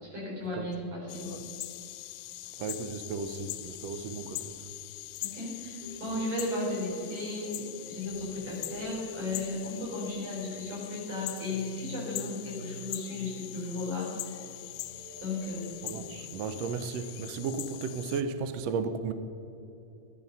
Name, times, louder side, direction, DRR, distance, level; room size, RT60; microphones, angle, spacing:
voice 1, 0.0-1.4 5.2-14.4 15.2-15.7, left 2 dB, 60° right, -5 dB, 5.5 m, -35 dB
sound 1, 1.1-18.2, left 16 dB, 85° left, 2.3 m, -42 dB
voice 2, 2.6-4.6 15.8-19.1, right 5 dB, 85° right, 9 dB, 1.4 m, -34 dB
sound 2, 5.8-16.1, equal, 35° right, 2.1 m, -48 dB
13.5 x 12.0 x 5.4 m, 2.7 s
omnidirectional pair, 3.9 m